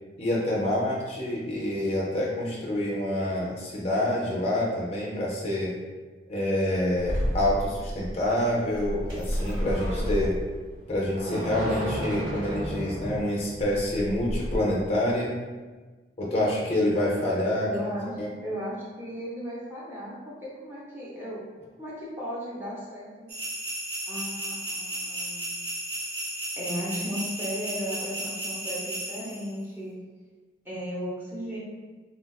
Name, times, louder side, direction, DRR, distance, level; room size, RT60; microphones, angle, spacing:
voice 1, 0.2-5.7 6.3-10.4 10.9-15.3 16.2-17.7 18.2-18.3, left 1 dB, 35° left, -4 dB, 0.5 m, -27 dB
sound 1, 7.0-14.6, equal, 90° right, 1.2 m, -31 dB
voice 2, 17.6-18.1 18.4-21.4 21.8-23.1 24.1-25.5 26.6-30.0 30.6-31.6, equal, 10° right, -7 dB, 0.7 m, -35 dB
sound 2, 23.3-29.5, right 1 dB, 60° right, 0.6 m, -34 dB
3.9 x 2.3 x 2.3 m, 1.3 s
head